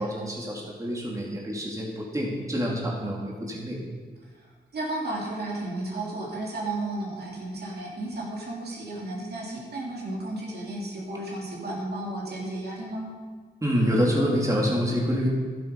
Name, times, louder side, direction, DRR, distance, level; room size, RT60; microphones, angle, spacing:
voice 1, 0.0-3.8 13.6-15.3, equal, 20° right, -3 dB, 2.7 m, -27 dB
voice 2, 4.7-13.1, right 2 dB, 65° right, -3 dB, 3.0 m, -33 dB
12.0 x 9.2 x 5.4 m, 1.5 s
cardioid pair, 80°, 18 cm